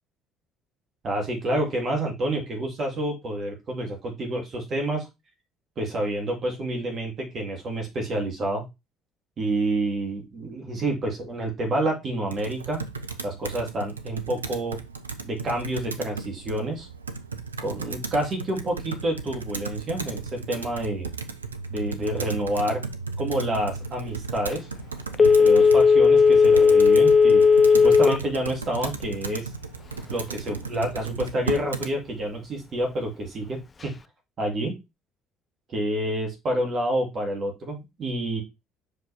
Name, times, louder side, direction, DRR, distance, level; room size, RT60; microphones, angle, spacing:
voice 1, 1.0-5.1 5.8-8.6 9.4-12.8 13.2-14.8 15.2-16.9 17.6-21.1 21.7-22.8 23.2-24.7 25.2-27.4 27.7-29.5 30.1-33.9 34.4-34.7 35.7-38.4, right 1 dB, 45° right, 1 dB, 3.0 m, -28 dB
Computer keyboard, 12.3-31.9, right 4 dB, 90° right, 0.5 m, -35 dB
Telephone, 25.1-28.3 28.7-28.8, left 5 dB, 30° left, 0.5 m, -15 dB
5.7 x 5.1 x 3.6 m, 0.23 s
figure-of-eight pair, 55°, 0 cm